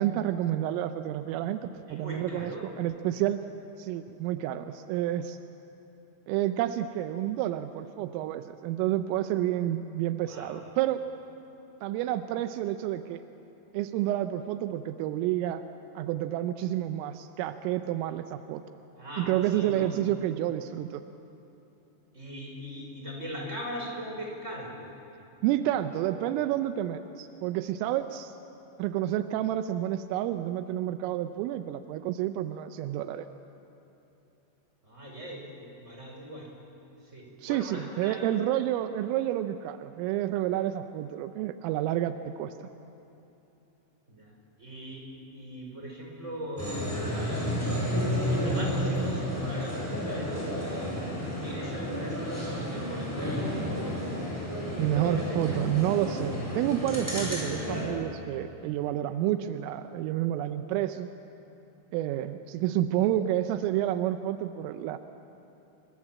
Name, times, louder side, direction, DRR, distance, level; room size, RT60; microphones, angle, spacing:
voice 1, 0.0-3.4 3.8-5.4 6.3-11.0 11.8-13.2 13.7-15.6 16.0-18.6 19.2-21.0 25.4-28.3 28.8-33.3 37.4-42.7 54.8-61.1 61.9-65.0, right 12 dB, 85° right, 9 dB, 3.4 m, -29 dB
voice 2, 1.9-2.7 10.1-10.5 18.9-19.9 22.1-24.9 34.8-36.5 37.0-38.3 44.1-44.3 44.6-45.0 45.3-47.6 47.9-50.9 51.4-53.5 54.4-55.6, equal, 15° right, -1 dB, 5.3 m, -40 dB
sound 1, 46.6-57.8, equal, 5° left, 7.6 m, -31 dB
28.5 x 24.0 x 7.6 m, 2.9 s
omnidirectional pair, 5.7 m